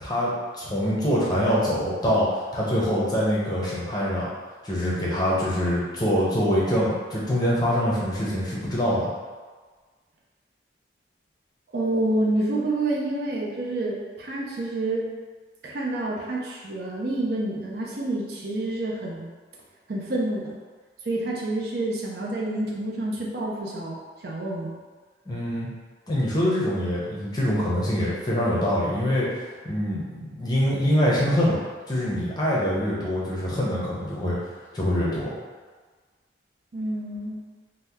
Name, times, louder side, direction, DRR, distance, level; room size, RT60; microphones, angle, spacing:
voice 1, 0.0-4.3 4.6-9.1 25.3-25.7 26.1-31.6 31.9-34.4 34.7-35.4, equal, 20° left, -6 dB, 0.6 m, -24 dB
voice 2, 11.7-15.1 15.6-19.3 19.9-20.5 21.0-24.8 36.7-37.4, right 2 dB, 55° right, -3 dB, 0.5 m, -28 dB
2.8 x 2.2 x 3.4 m, 1.4 s
head